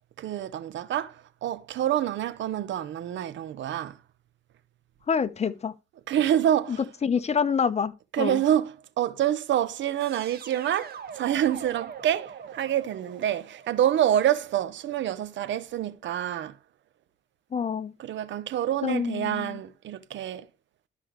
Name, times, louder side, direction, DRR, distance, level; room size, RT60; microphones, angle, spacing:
voice 1, 0.2-4.0 6.1-6.8 8.1-16.6 18.0-20.5, right 11 dB, 70° right, 1.0 m, -27 dB
voice 2, 5.1-5.7 7.0-8.4 17.5-17.9 18.8-19.6, left 6 dB, 35° left, 0.9 m, -27 dB
sound 1, 10.0-14.9, right 7 dB, 50° right, 1.8 m, -43 dB
12.5 x 5.5 x 3.2 m
cardioid pair, 90°, 20 cm